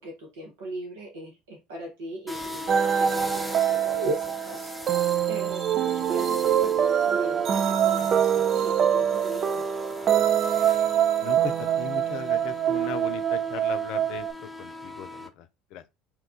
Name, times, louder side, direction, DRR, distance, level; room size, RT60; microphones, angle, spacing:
voice 1, 0.0-4.7 5.3-9.6, right 1 dB, 80° right, 0.9 m, -38 dB
sound 1, 2.3-15.3, left 2 dB, ahead, 0.6 m, -40 dB
sound 2, 2.7-14.3, right 9 dB, 45° right, 0.4 m, -24 dB
voice 2, 11.2-15.8, left 10 dB, 60° left, 0.5 m, -38 dB
2.9 x 2.3 x 3.6 m
hypercardioid pair, 70°, 0 cm